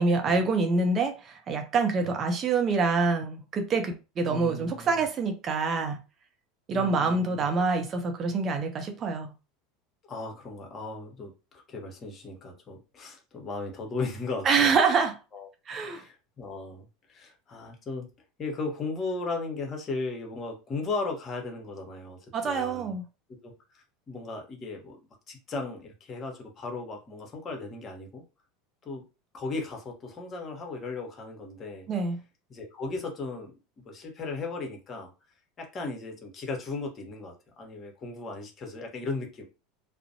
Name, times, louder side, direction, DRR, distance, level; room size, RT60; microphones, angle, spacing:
voice 1, 0.0-6.0 6.7-9.3 14.4-15.1 15.7-16.0 22.3-23.0 31.9-32.2, right 4 dB, 35° right, 0.5 m, -26 dB
voice 2, 4.3-5.0 6.7-7.6 10.1-14.7 15.3-15.5 15.9-18.1 18.4-22.9 23.4-25.0 25.3-28.2 28.8-29.0 29.3-31.9 32.5-33.5 33.8-35.1 35.6-39.4, left 3 dB, 35° left, 0.9 m, -36 dB
2.5 x 2.0 x 2.7 m
hypercardioid pair, 80°, 0 cm